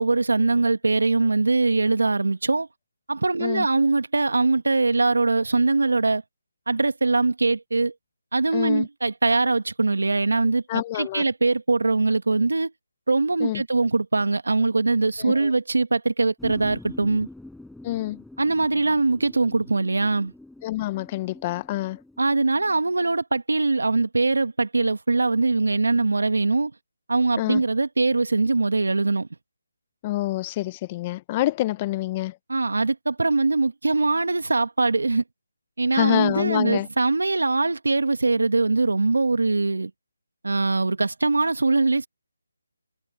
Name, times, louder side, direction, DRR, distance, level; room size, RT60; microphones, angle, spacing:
voice 1, 0.0-2.7 3.1-6.2 6.7-7.9 8.3-12.7 13.1-17.3 18.4-20.3 22.2-26.7 27.1-29.3 32.5-35.2 35.8-39.9 40.4-42.1, right 3 dB, 80° right, 2.0 m, -22 dB
voice 2, 8.5-8.9 10.7-11.2 13.4-13.6 15.2-15.5 17.8-18.2 20.6-22.0 27.4-27.6 30.0-32.4 35.9-36.9, left 16 dB, 25° left, 0.9 m, -27 dB
sound 1, 16.4-22.9, left 2 dB, ahead, 5.8 m, -45 dB
figure-of-eight pair, 160°, 0 cm